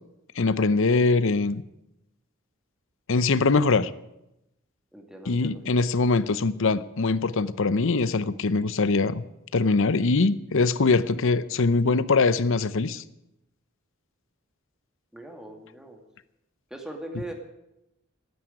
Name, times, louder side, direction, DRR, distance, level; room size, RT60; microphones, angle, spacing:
voice 1, 0.4-1.6 3.1-3.9 5.3-9.2 9.5-13.0, left 3 dB, 65° left, 16 dB, 0.7 m, -22 dB
voice 2, 4.9-5.6 15.1-16.0 16.7-17.3, right 1 dB, 5° right, 3 dB, 2.3 m, -40 dB
13.0 x 9.8 x 10.0 m, 0.89 s
head